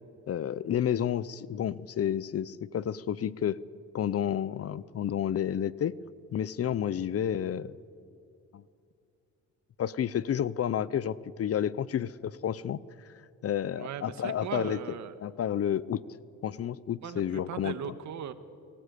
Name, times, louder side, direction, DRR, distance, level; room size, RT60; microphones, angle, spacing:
voice 1, 0.3-3.6 3.9-5.9 6.3-7.8 8.5-8.6 9.8-12.8 13.4-16.0 16.4-17.8, left 9 dB, 50° left, 19 dB, 0.8 m, -30 dB
voice 2, 13.8-15.1 17.0-18.3, right 9 dB, 70° right, 11 dB, 1.6 m, -38 dB
29.5 x 19.0 x 8.4 m, 2.5 s
cardioid pair, 90°, 30 cm